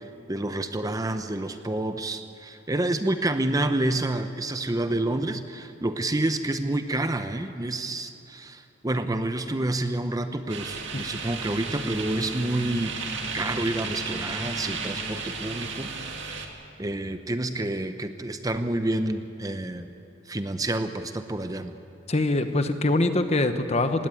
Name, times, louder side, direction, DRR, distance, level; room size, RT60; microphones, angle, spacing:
voice 1, 0.3-12.9 13.3-16.3 16.8-19.9 20.3-21.7, right 1 dB, 20° right, 9 dB, 0.7 m, -28 dB
sound 1, 10.5-16.5, right 5 dB, 70° right, 2.1 m, -34 dB
sound 2, 11.3-16.0, left 1 dB, 5° left, 1.8 m, -40 dB
voice 2, 22.1-24.1, left 2 dB, 35° left, 9 dB, 1.0 m, -23 dB
18.0 x 18.0 x 9.0 m, 2.7 s
head